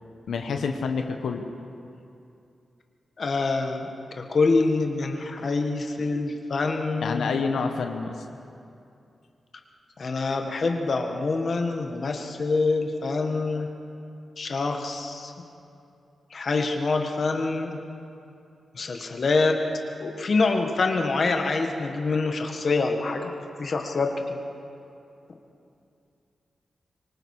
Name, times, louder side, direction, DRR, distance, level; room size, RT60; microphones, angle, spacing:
voice 1, 0.3-1.4 7.0-8.2 18.9-19.0, left 5 dB, 85° left, 5 dB, 1.2 m, -28 dB
voice 2, 3.2-3.9 4.2-7.3 10.0-13.7 14.4-15.3 16.3-17.8 18.7-19.6 20.0-23.3 23.6-24.2, left 3 dB, 40° left, 3 dB, 1.6 m, -25 dB
24.5 x 24.5 x 4.9 m, 2.6 s
wide cardioid pair, 175°, 0 cm